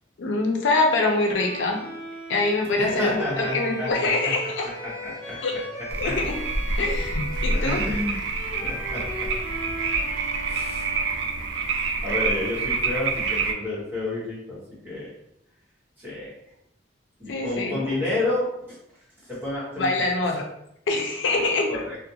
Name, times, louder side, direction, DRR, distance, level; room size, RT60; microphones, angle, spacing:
voice 1, 0.2-1.8 2.3-4.7 5.4-5.5 6.0-6.4 6.8-7.8 17.3-17.8 19.8-20.4 20.9-21.7, left 3 dB, 80° left, 1 dB, 0.5 m, -24 dB
Bowed string instrument, 0.9-11.9, equal, 15° left, 0.5 m, -38 dB
voice 2, 2.8-4.4 4.8-5.4 6.0-6.2 7.5-8.2 8.6-9.6 10.5-10.8 12.0-15.1 16.0-16.3 17.2-18.8 19.2-19.9 21.3-21.4 21.7-22.0, left 2 dB, 10° right, -8 dB, 1.0 m, -30 dB
sound 1, 5.9-13.5, right 3 dB, 80° right, 0.3 m, -27 dB
2.4 x 2.1 x 2.7 m, 0.78 s
head